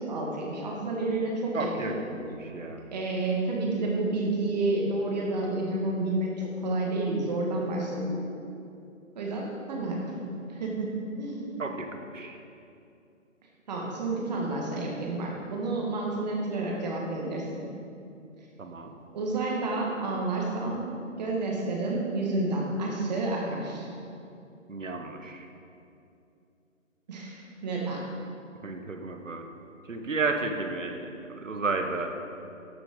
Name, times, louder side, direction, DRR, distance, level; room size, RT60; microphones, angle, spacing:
voice 1, 0.0-1.9 2.9-8.2 9.1-11.6 13.7-17.7 19.1-20.9 21.2-23.9 27.1-28.1, right 2 dB, 30° right, -2 dB, 1.7 m, -30 dB
voice 2, 1.5-2.9 11.6-12.4 18.6-18.9 24.7-25.5 28.6-29.4 29.9-31.1 31.4-32.1, right 3 dB, 75° right, 5 dB, 1.2 m, -32 dB
12.5 x 6.9 x 3.8 m, 2.6 s
figure-of-eight pair, 145°, 39 cm